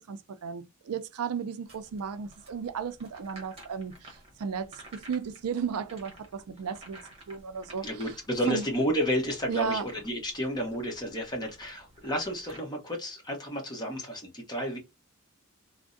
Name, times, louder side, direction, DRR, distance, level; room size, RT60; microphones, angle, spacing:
voice 1, 0.0-7.0 7.3-7.9 8.5-8.7 9.5-9.9, right 6 dB, 85° right, 0.4 m, -34 dB
sound 1, 1.6-12.6, right 1 dB, 25° right, 1.1 m, -52 dB
voice 2, 7.8-14.8, equal, 20° left, 1.0 m, -31 dB
3.4 x 2.1 x 2.5 m
head